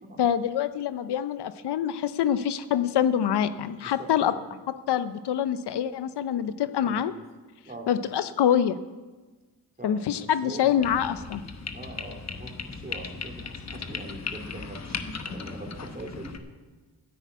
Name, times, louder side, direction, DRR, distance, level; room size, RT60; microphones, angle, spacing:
voice 1, 0.2-4.3 4.9-7.1 7.9-8.8 9.8-11.4, left 9 dB, 70° left, 12 dB, 0.7 m, -25 dB
voice 2, 3.8-4.4 6.8-7.0 7.6-7.9 9.8-10.9 11.7-16.3, right 2 dB, 20° right, 0 dB, 2.9 m, -42 dB
sound 1, 10.8-16.4, left 5 dB, 40° left, 1.0 m, -37 dB
10.0 x 8.8 x 8.2 m, 1.3 s
cardioid pair, 75°, 41 cm